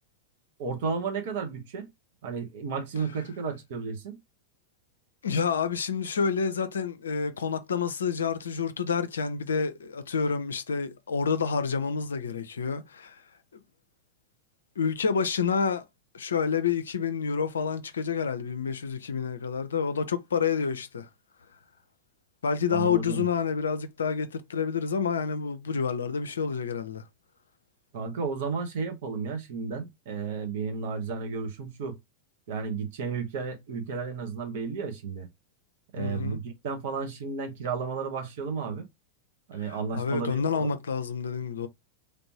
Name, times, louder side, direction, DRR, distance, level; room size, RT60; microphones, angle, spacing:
voice 1, 0.6-1.9 2.2-4.2 22.7-23.3 27.9-32.0 32.5-35.3 35.9-38.9 39.5-40.7, right 5 dB, 55° right, 0.9 m, -33 dB
voice 2, 5.2-13.2 14.8-15.8 16.1-21.1 22.4-27.0 36.0-36.4 39.7-41.7, left 6 dB, 70° left, 0.4 m, -28 dB
3.3 x 2.6 x 2.9 m
figure-of-eight pair, 90°, 0 cm